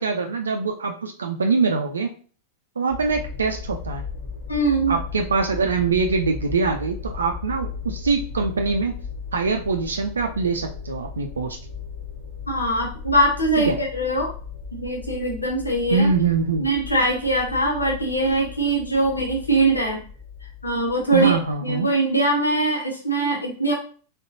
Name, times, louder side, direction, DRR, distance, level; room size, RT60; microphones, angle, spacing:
voice 1, 0.0-2.1 2.8-4.0 4.9-8.9 9.3-11.6 13.6-13.8 15.9-16.7 21.1-21.9, right 4 dB, 70° right, 3 dB, 0.4 m, -23 dB
sound 1, 2.9-21.8, left 5 dB, 55° left, 1.5 m, -36 dB
voice 2, 4.5-5.0 12.5-14.3 14.7-16.1 16.6-20.0 20.6-23.7, right 2 dB, 80° left, -3 dB, 1.2 m, -22 dB
4.0 x 3.5 x 2.8 m, 0.41 s
figure-of-eight pair, 90°, 0 cm